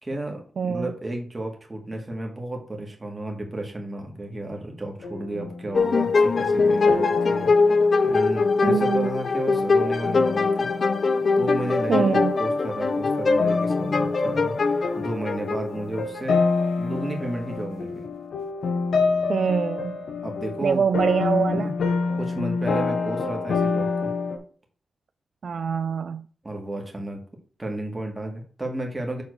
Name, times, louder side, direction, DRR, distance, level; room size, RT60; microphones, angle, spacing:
voice 1, 0.0-7.5 8.0-10.7 11.4-12.0 12.4-16.4 16.8-18.1 20.2-20.9 21.5-21.7 22.2-24.1 26.4-27.3 27.6-29.2, right 1 dB, 15° right, 1.7 m, -32 dB
voice 2, 0.6-0.9 8.6-9.1 11.9-12.3 19.3-20.0 20.6-21.7 25.4-26.2, right 6 dB, 55° right, 0.3 m, -24 dB
sound 1, 5.0-11.9 12.1-12.4 13.4-24.4, left 4 dB, 80° left, 1.5 m, -28 dB
sound 2, 5.7-16.2, left 4 dB, 40° left, 0.5 m, -22 dB
7.1 x 3.8 x 6.3 m
wide cardioid pair, 160°, 0 cm